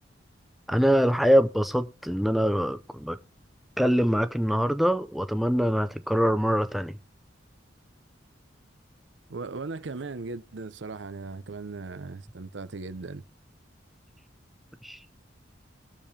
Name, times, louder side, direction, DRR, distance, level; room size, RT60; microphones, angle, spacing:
voice 1, 0.7-3.2 3.8-7.0 14.8-15.0, equal, ahead, 0.4 m, -24 dB
voice 2, 9.3-13.2, right 3 dB, 75° right, 0.7 m, -38 dB
20.5 x 6.9 x 2.7 m
head